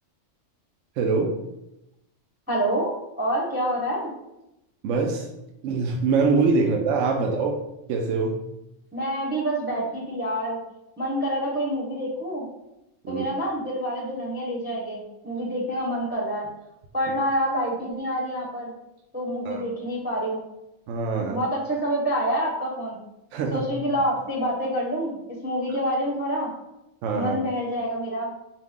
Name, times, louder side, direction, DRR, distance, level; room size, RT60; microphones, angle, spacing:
voice 1, 1.0-1.3 4.8-5.3 5.6-7.6 7.9-8.4 13.1-13.3 19.4-19.6 20.9-21.4 23.3-23.6 27.0-27.4, right 4 dB, 75° right, 1 dB, 0.9 m, -23 dB
voice 2, 2.5-2.9 3.2-4.1 8.9-10.6 11.0-12.5 13.1-16.5 16.9-18.8 19.1-20.4 21.3-23.0 23.5-26.5 27.2-28.3, equal, 10° right, -4 dB, 0.7 m, -27 dB
4.9 x 2.1 x 3.6 m, 0.89 s
omnidirectional pair, 1.3 m